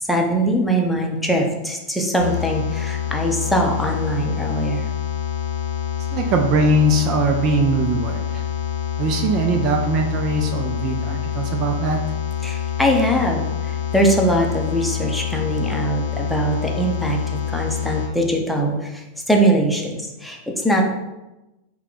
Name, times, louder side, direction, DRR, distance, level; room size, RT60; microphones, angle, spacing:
voice 1, 0.1-4.9 12.4-20.8, right 1 dB, ahead, 0 dB, 0.7 m, -22 dB
sound 1, 2.2-18.1, left 10 dB, 60° left, 0.7 m, -26 dB
voice 2, 6.1-8.4 9.0-12.0, right 2 dB, 35° right, 4 dB, 0.4 m, -21 dB
5.6 x 2.2 x 3.9 m, 1.0 s
figure-of-eight pair, 90°, 0 cm